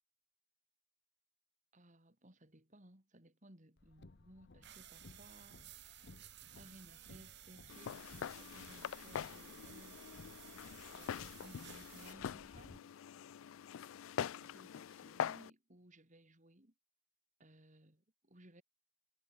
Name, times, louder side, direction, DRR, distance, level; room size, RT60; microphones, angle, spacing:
voice 1, 1.7-6.1 6.6-10.1 10.9-12.9 14.2-16.7 17.4-18.6, right 1 dB, 40° right, 4.0 m, -61 dB
Car, 3.8-12.8, left 2 dB, 55° left, 0.9 m, -60 dB
sound 1, 4.6-12.1, right 13 dB, 55° right, 2.5 m, -57 dB
Walk footsteps, 7.7-15.5, left 8 dB, 75° left, 0.4 m, -44 dB
head